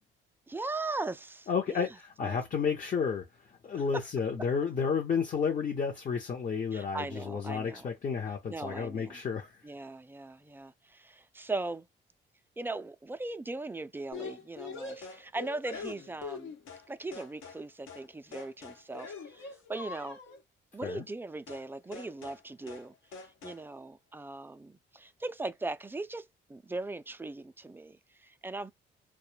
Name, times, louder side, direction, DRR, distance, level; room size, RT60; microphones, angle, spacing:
voice 1, 0.5-1.9 2.2-2.4 3.7-3.8 6.7-7.9 8.5-9.2 9.6-11.9 12.6-16.5 16.9-20.2 20.7-28.7, right 2 dB, 10° right, 0.3 m, -39 dB
voice 2, 1.5-9.6 20.8-21.1, left 6 dB, 40° left, 0.7 m, -32 dB
sound 1, 14.1-16.9 17.1-17.6 17.9-18.1 18.3-20.4 21.5-21.7 21.9-22.4 22.7-22.9 23.1-23.6, left 5 dB, 80° left, 1.0 m, -44 dB
2.2 x 2.1 x 3.1 m
cardioid pair, 90°, 20 cm